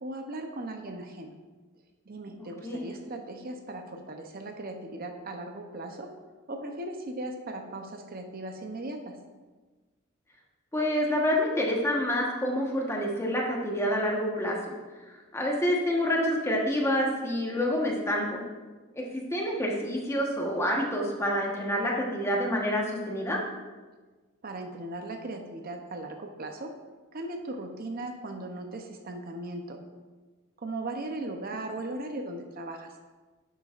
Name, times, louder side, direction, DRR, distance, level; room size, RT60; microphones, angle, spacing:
voice 1, 0.0-1.3 2.1-6.1 6.5-9.2 24.4-26.7 27.1-29.8 30.6-32.9, right 2 dB, 45° right, 4 dB, 0.7 m, -38 dB
voice 2, 10.7-14.8 15.3-18.4 18.9-23.4, equal, 15° left, -2 dB, 1.2 m, -27 dB
11.0 x 8.0 x 2.5 m, 1.3 s
head